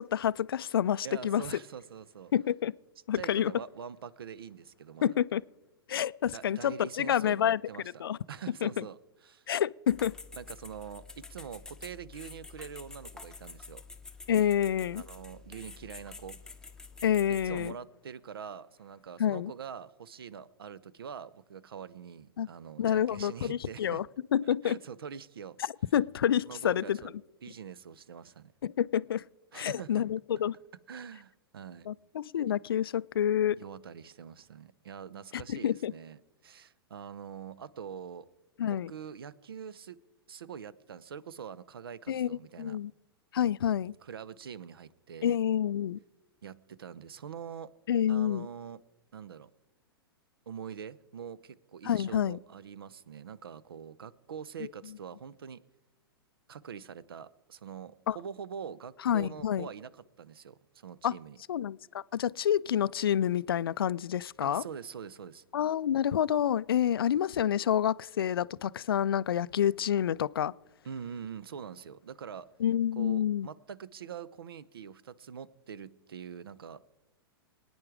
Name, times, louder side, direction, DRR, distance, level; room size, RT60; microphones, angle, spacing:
voice 1, 0.0-1.4 2.3-2.7 3.1-3.5 5.0-5.4 5.9-7.6 8.0-8.2 8.6-8.8 9.5-10.1 14.3-15.0 17.0-17.7 19.2-19.5 22.4-22.5 22.8-24.0 24.3-24.8 25.9-27.0 28.6-29.2 29.5-30.6 31.9-33.6 35.3-35.9 38.6-38.9 42.1-42.9 43.3-43.9 45.2-46.0 47.9-48.5 51.8-52.4 58.1-58.2 59.0-59.7 61.0-61.1 61.5-64.6 65.5-70.5 72.6-73.5, left 10 dB, 70° left, 0.4 m, -28 dB
voice 2, 1.0-2.3 3.1-5.2 6.3-9.5 10.4-13.8 14.9-16.4 17.3-24.0 24.6-25.6 26.5-27.1 27.4-28.5 29.5-30.0 30.9-31.9 33.6-38.3 38.7-40.0 40.3-42.8 44.0-45.4 46.4-47.7 48.1-48.8 49.1-49.5 50.5-55.6 56.5-61.4 64.4-65.4 70.8-72.5 73.0-76.8, right 7 dB, 70° right, 0.7 m, -44 dB
sound 1, 9.9-17.7, left 4 dB, 5° left, 0.9 m, -48 dB
24.5 x 9.6 x 4.9 m
figure-of-eight pair, 100°, 13 cm